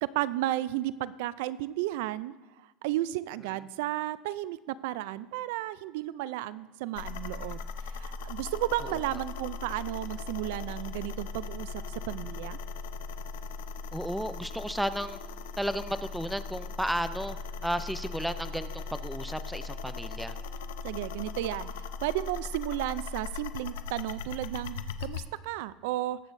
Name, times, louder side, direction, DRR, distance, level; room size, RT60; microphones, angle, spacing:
voice 1, 0.0-7.6 7.9-12.6 20.8-26.2, right 15 dB, 75° right, 17 dB, 0.3 m, -33 dB
sound 1, 6.9-25.2, left 4 dB, 85° left, 0.6 m, -39 dB
voice 2, 13.9-15.2 15.6-17.4 17.6-20.4, equal, ahead, 12 dB, 0.4 m, -33 dB
20.0 x 8.2 x 2.6 m, 1.1 s
supercardioid pair, 145°, 0 cm